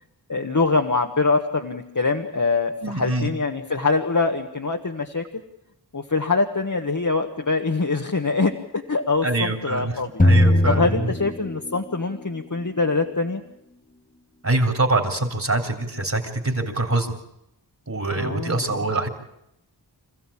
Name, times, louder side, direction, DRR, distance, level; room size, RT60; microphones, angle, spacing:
voice 1, 0.3-5.4 5.9-10.1 10.7-13.4 18.2-18.6, left 3 dB, 45° left, 3 dB, 1.5 m, -24 dB
voice 2, 2.8-3.3 9.2-11.2 14.4-17.1 17.9-19.1, right 2 dB, 40° right, 4 dB, 3.5 m, -24 dB
sound 1, 10.2-12.0, left 1 dB, 20° left, 1.1 m, -19 dB
26.5 x 15.5 x 8.7 m, 0.83 s
wide cardioid pair, 60°, 41 cm